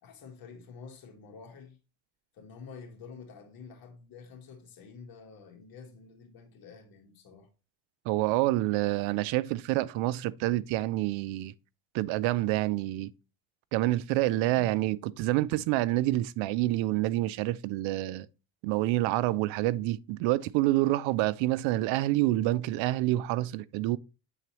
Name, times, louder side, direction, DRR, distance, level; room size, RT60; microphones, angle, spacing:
voice 1, 0.0-1.8 2.3-7.5 14.2-14.7, left 5 dB, 50° left, 1.7 m, -49 dB
voice 2, 8.1-11.5 11.9-13.1 13.7-18.3 18.6-24.0, right 17 dB, 85° right, 0.5 m, -27 dB
8.3 x 3.9 x 3.0 m
cardioid pair, 130°, 44 cm